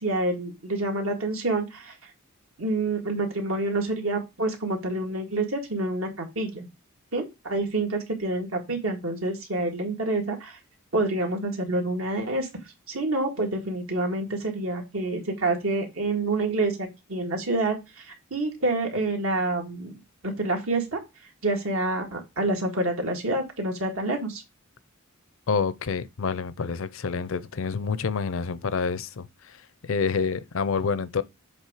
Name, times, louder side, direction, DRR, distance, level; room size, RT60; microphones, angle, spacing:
voice 1, 0.0-2.0 2.6-6.7 7.1-10.6 10.9-12.5 12.9-17.8 18.1-21.0 21.4-24.4, right 2 dB, 70° right, 1.9 m, -27 dB
voice 2, 25.5-29.6 29.8-31.2, left 5 dB, 65° left, 0.5 m, -28 dB
7.4 x 3.5 x 4.9 m
head